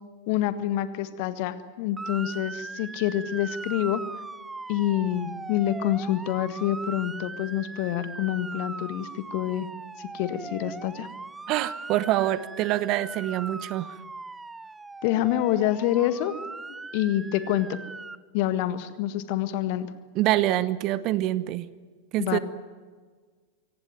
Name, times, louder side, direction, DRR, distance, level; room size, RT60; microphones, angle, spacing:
voice 1, 0.3-4.0 4.7-9.7 10.0-11.1 15.0-16.3 16.7-17.8 18.3-19.9 22.2-22.4, left 12 dB, 45° left, 12 dB, 1.6 m, -27 dB
Motor vehicle (road) / Siren, 2.0-18.2, right 3 dB, 10° right, 0.7 m, -39 dB
voice 2, 11.5-14.0 20.1-21.7 22.1-22.4, right 14 dB, 40° right, 17 dB, 1.0 m, -25 dB
24.5 x 18.0 x 9.3 m, 1.5 s
figure-of-eight pair, 90°, 0 cm